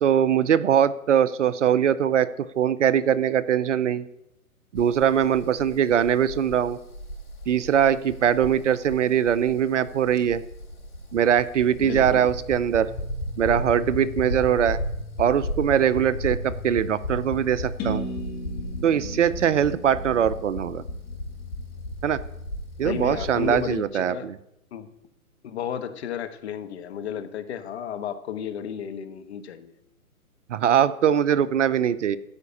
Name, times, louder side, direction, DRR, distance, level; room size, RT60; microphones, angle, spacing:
voice 1, 0.0-2.3 2.6-4.0 4.7-6.8 7.5-10.4 11.1-12.9 13.4-14.8 15.2-18.1 18.8-20.8 22.0-22.2 22.8-24.3 30.5-32.2, right 9 dB, 55° right, 17 dB, 0.6 m, -22 dB
sound 1, 4.7-23.8, left 1 dB, 80° left, 5.4 m, -35 dB
voice 2, 11.8-12.2 22.8-24.3 24.7-24.9 25.4-29.7, left 9 dB, 45° left, 10 dB, 1.2 m, -33 dB
sound 2, 17.8-21.7, equal, 25° left, 2.1 m, -36 dB
13.5 x 5.1 x 8.5 m, 0.82 s
figure-of-eight pair, 130°, 44 cm